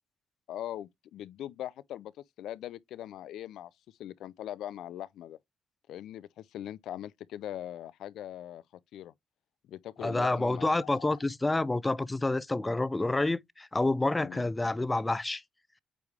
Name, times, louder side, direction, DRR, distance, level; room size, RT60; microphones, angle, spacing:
voice 1, 0.5-2.1 2.4-3.7 4.0-5.4 5.9-8.6 8.9-9.1 9.6-11.2 14.2-14.5, left 12 dB, 80° left, 0.4 m, -41 dB
voice 2, 10.0-15.4, left 2 dB, 15° left, 0.5 m, -28 dB
8.4 x 3.2 x 3.5 m
cardioid pair, 90°, 0 cm